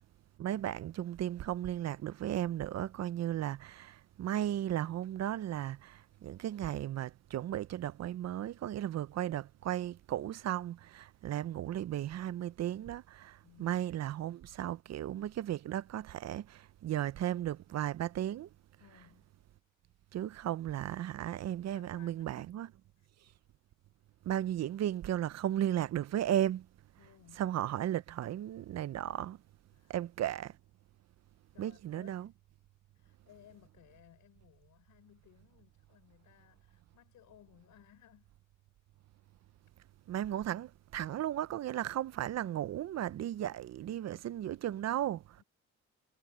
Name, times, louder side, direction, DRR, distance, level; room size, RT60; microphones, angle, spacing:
voice 1, 0.4-18.5 20.1-22.7 24.2-26.7 27.4-29.4 29.9-30.6 31.6-32.3 40.1-45.4, right 12 dB, 60° right, 0.6 m, -35 dB
voice 2, 13.4-13.8 18.8-19.3 21.7-22.6 23.0-23.1 27.0-27.4 29.7-30.0 31.5-32.3 32.9-38.3 45.4-45.5, left 12 dB, 80° left, 6.5 m, -61 dB
cardioid pair, 90°, 30 cm